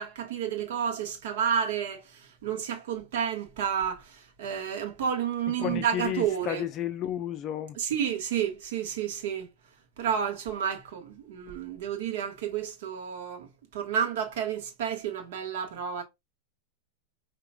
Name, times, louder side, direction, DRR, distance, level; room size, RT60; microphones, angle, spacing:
voice 1, 0.0-6.6 7.8-9.5 10.0-16.0, right 8 dB, 65° right, 1.4 m, -31 dB
voice 2, 5.6-7.8, left 10 dB, 25° left, 0.4 m, -32 dB
5.7 x 2.9 x 2.3 m
supercardioid pair, 160°, 0 cm